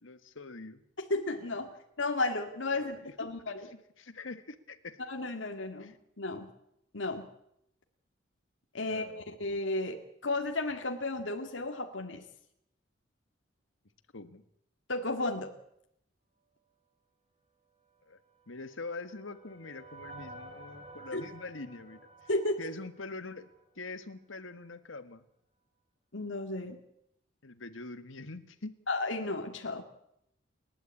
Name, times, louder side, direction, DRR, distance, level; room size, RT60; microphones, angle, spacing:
voice 1, 0.0-0.8 1.7-1.8 2.7-3.1 3.6-5.0 5.8-6.0 8.8-9.2 14.1-14.4 18.1-18.2 18.5-22.3 22.6-23.5 23.8-25.2 27.4-28.8, left 3 dB, 90° left, 11 dB, 1.6 m, -44 dB
voice 2, 1.1-1.7 2.0-3.6 5.1-6.5 6.9-7.3 8.7-9.1 9.4-12.2 14.9-15.5 21.1-21.2 22.3-22.7 26.1-26.8 28.9-29.8, left 2 dB, 70° left, 3 dB, 2.2 m, -33 dB
sound 1, 18.4-23.7, right 2 dB, 35° right, 3.3 m, -51 dB
29.5 x 12.0 x 8.5 m, 0.77 s
head